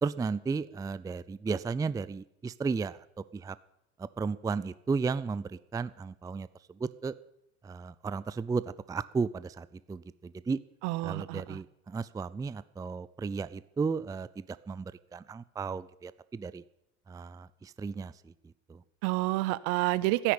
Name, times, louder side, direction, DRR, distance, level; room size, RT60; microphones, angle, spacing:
voice 1, 0.0-3.0 3.3-3.6 4.0-6.5 6.7-7.1 7.6-8.6 8.9-10.6 11.0-16.6 17.1-18.3 18.7-18.8, right 4 dB, 10° right, 17 dB, 0.5 m, -34 dB
voice 2, 10.8-11.6 19.0-20.3, right 19 dB, 55° right, 18 dB, 0.9 m, -29 dB
14.0 x 10.0 x 8.6 m, 0.81 s
figure-of-eight pair, 65°, 36 cm